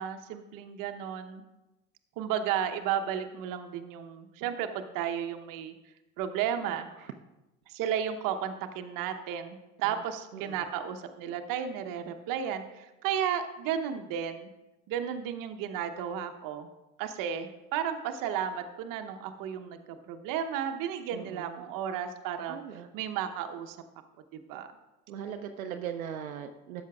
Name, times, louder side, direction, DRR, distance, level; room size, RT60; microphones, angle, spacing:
voice 1, 0.0-1.4 2.2-5.7 6.2-6.9 7.7-14.5 14.9-16.7 17.0-22.6 22.9-23.8 24.3-24.7, right 9 dB, 50° right, 7 dB, 0.9 m, -33 dB
voice 2, 10.3-10.7 21.1-21.6 22.5-22.9 25.1-26.8, right 8 dB, 85° right, 6 dB, 0.6 m, -39 dB
13.0 x 8.2 x 2.4 m, 1.0 s
hypercardioid pair, 70°, 41 cm